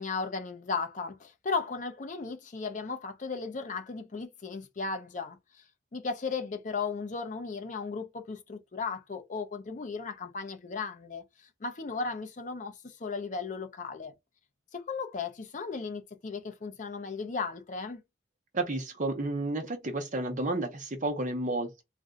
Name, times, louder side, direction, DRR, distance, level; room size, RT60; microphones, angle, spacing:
voice 1, 0.0-5.4 5.9-11.2 11.6-14.1 14.7-18.0, left 4 dB, 40° left, 0.5 m, -35 dB
voice 2, 18.5-21.8, right 2 dB, 40° right, 0.8 m, -31 dB
2.5 x 2.2 x 3.7 m
head